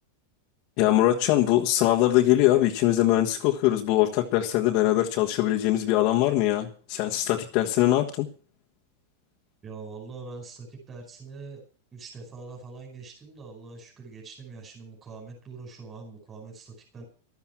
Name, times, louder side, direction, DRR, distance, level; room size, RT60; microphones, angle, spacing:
voice 1, 0.8-8.3, left 14 dB, 40° left, 1.4 m, -22 dB
voice 2, 9.6-11.6 11.9-17.0, right 4 dB, 15° right, 5.0 m, -43 dB
13.5 x 13.0 x 5.9 m
supercardioid pair, 165°, 0 cm